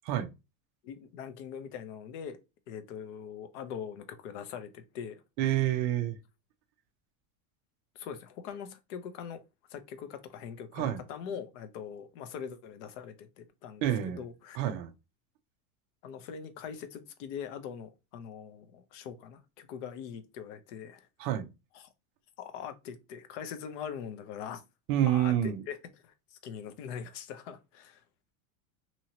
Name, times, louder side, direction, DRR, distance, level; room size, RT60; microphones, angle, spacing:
voice 1, 0.8-2.4 2.7-5.2 8.0-9.4 9.7-14.6 16.0-21.1 21.7-21.9 22.4-24.6 25.1-25.8 26.0-28.0, left 7 dB, 55° left, 0.7 m, -42 dB
voice 2, 5.4-6.2 10.7-11.0 13.8-14.2 14.5-14.9 21.2-21.5 24.9-25.6, right 12 dB, 40° right, 0.4 m, -28 dB
2.8 x 2.8 x 2.8 m
supercardioid pair, 155°, 43 cm